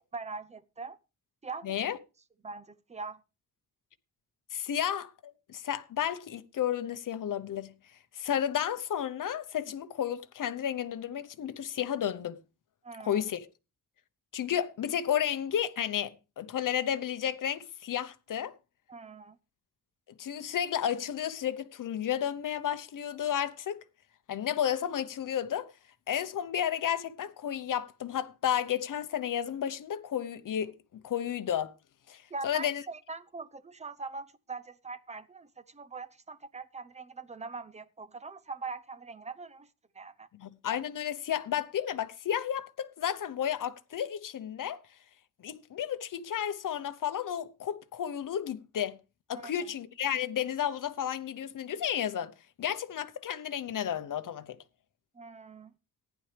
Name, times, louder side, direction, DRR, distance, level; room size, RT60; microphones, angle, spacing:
voice 1, 0.1-1.0 1.4-1.7 2.4-3.2 12.8-13.2 18.9-19.4 32.3-39.7 39.9-40.3 49.3-49.5 55.1-55.7, right 4 dB, 20° right, 0.7 m, -42 dB
voice 2, 1.6-2.0 4.5-7.7 8.1-12.4 13.0-13.5 14.3-18.5 20.2-23.8 24.3-25.7 26.1-31.7 32.1-32.8 40.4-44.8 45.4-49.0 49.3-52.3 52.6-54.6, left 9 dB, 60° left, 0.9 m, -32 dB
15.0 x 10.0 x 3.4 m
wide cardioid pair, 135°, 36 cm